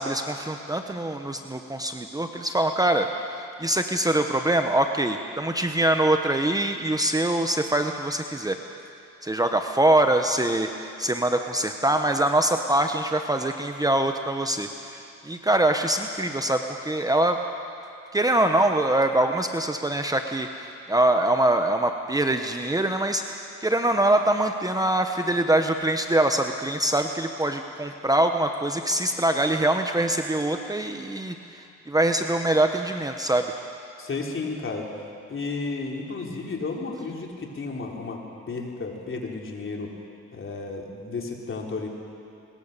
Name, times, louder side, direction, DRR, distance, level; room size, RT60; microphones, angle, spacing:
voice 1, 0.0-3.1 3.6-8.6 9.2-17.4 18.1-33.6, right 1 dB, 10° right, 5 dB, 1.0 m, -24 dB
voice 2, 34.0-34.9 35.3-38.2 38.5-40.0 40.3-41.9, left 3 dB, 40° left, 0 dB, 3.8 m, -32 dB
23.0 x 21.0 x 6.8 m, 2.6 s
cardioid pair, 90°, 30 cm